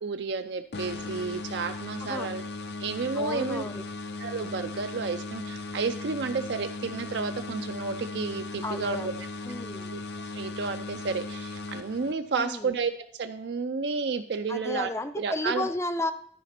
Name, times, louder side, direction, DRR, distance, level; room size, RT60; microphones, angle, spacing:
voice 1, 0.0-2.4 2.8-3.6 4.2-9.1 9.9-10.0 10.3-12.9 13.2-14.9 15.2-15.7, right 4 dB, 75° right, 7 dB, 0.5 m, -31 dB
sound 1, 0.7-12.4, left 3 dB, 65° left, 0.6 m, -37 dB
voice 2, 3.2-3.8 8.6-9.9 12.4-12.7 14.5-16.1, left 2 dB, 15° left, 11 dB, 0.5 m, -33 dB
13.0 x 5.0 x 4.3 m, 0.67 s
head